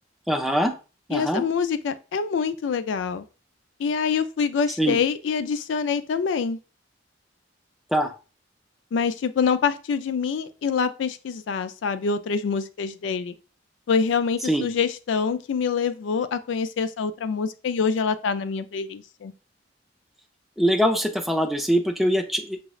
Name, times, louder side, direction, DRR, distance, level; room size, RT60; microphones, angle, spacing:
voice 1, 0.3-0.7 1.1-1.4 4.8-5.0 7.9-8.1 14.5-14.7 20.6-22.7, equal, ahead, 4 dB, 0.4 m, -23 dB
voice 2, 1.1-3.3 3.8-6.6 8.9-13.3 13.9-19.3, left 6 dB, 75° left, 11 dB, 0.3 m, -25 dB
5.8 x 2.0 x 2.3 m, 0.33 s
head